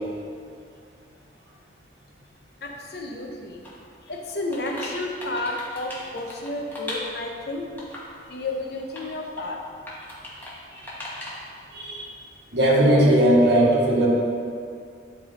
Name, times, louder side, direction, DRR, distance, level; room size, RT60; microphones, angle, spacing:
voice 1, 2.6-3.6 4.0-7.7 8.3-9.6, left 2 dB, 60° left, 1 dB, 0.8 m, -31 dB
sound 1, 3.6-3.7 4.1-7.3 7.8-8.2 8.6-9.1 9.4-9.5 9.9-10.5 10.8-11.4, left 1 dB, 10° left, 1.1 m, -38 dB
voice 2, 11.7-12.1 12.5-14.1, right 1 dB, 65° right, -3 dB, 1.3 m, -18 dB
9.6 x 3.4 x 4.1 m, 2.3 s
head